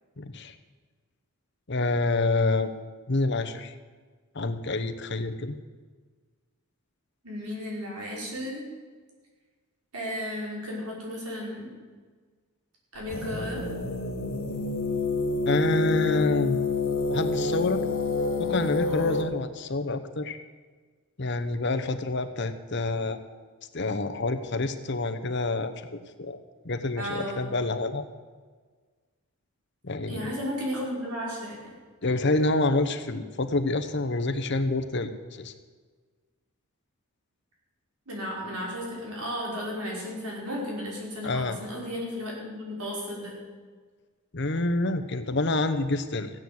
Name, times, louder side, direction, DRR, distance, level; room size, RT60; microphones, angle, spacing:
voice 1, 0.2-0.5 1.7-2.8 3.1-3.7 4.3-5.6 15.5-16.6 17.1-17.8 18.4-20.4 21.2-23.2 23.7-26.4 26.6-28.1 29.8-30.3 32.0-35.5 41.2-41.6 44.3-46.3, left 2 dB, 50° left, 9 dB, 1.0 m, -27 dB
voice 2, 7.2-8.6 9.9-11.7 12.9-13.6 26.9-27.4 30.0-31.7 38.1-43.3, equal, 90° right, -3 dB, 5.3 m, -34 dB
sound 1, 13.1-19.2, left 3 dB, 75° left, 2.4 m, -28 dB
15.5 x 9.0 x 7.8 m, 1.5 s
head